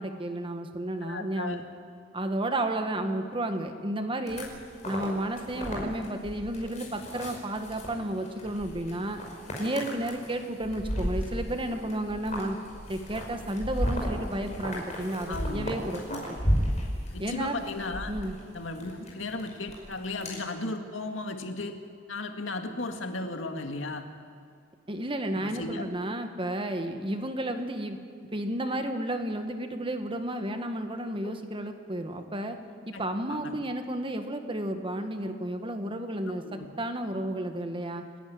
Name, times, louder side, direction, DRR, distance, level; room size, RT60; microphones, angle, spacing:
voice 1, 0.0-1.6 2.1-4.5 4.8-9.2 9.6-12.6 12.9-16.0 17.2-17.6 18.1-18.4 24.9-28.0 28.3-32.6 32.9-36.4 36.8-38.0, right 1 dB, 25° right, 6 dB, 1.6 m, -32 dB
voice 2, 1.0-1.6 15.3-15.7 16.1-16.2 17.1-18.1 18.5-21.8 22.1-24.0 25.4-25.8 31.2-31.3 32.9-33.0 33.3-33.6 36.3-36.7, left 2 dB, 85° left, 5 dB, 2.1 m, -35 dB
sound 1, 4.3-20.4, equal, 40° left, 5.3 m, -34 dB
29.5 x 11.0 x 9.6 m, 2.3 s
head